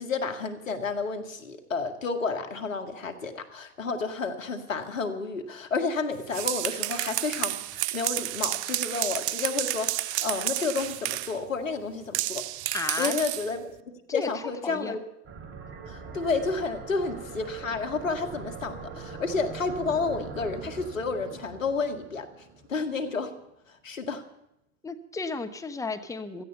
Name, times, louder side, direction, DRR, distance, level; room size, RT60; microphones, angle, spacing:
voice 1, 0.0-12.4 13.0-15.0 15.9-22.3 22.7-23.3 23.7-24.2, left 4 dB, 90° left, 7 dB, 1.8 m, -31 dB
sound 1, 6.1-11.4 12.1-13.5, right 15 dB, 60° right, 0.6 m, -30 dB
voice 2, 12.7-13.2 14.1-15.0 24.8-26.4, left 4 dB, 10° left, 8 dB, 1.1 m, -33 dB
sound 2, 15.3-23.6, right 5 dB, 30° right, 2.9 m, -42 dB
16.5 x 15.0 x 5.6 m, 0.83 s
hypercardioid pair, 90°, 38 cm